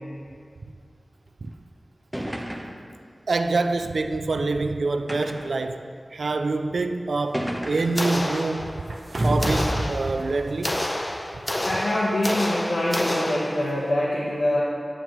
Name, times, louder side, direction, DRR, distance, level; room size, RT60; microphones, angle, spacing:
sound 1, 1.5-1.6 2.1-2.9 3.8-3.9 5.1-5.6 6.5-6.6 7.3-8.1, equal, ahead, 1.0 m, -32 dB
voice 1, 3.3-5.8 6.1-8.8 9.2-10.9, right 3 dB, 80° right, 8 dB, 0.3 m, -26 dB
sound 2, 8.0-9.0 9.4-13.9, left 1 dB, 20° left, 0.6 m, -29 dB
sound 3, 8.9-9.8 10.1-10.2, right 1 dB, 55° right, 0.9 m, -24 dB
voice 2, 11.6-14.6, left 1 dB, 85° left, -6 dB, 1.0 m, -24 dB
11.0 x 9.2 x 3.1 m, 2.2 s
wide cardioid pair, 55°, 0 cm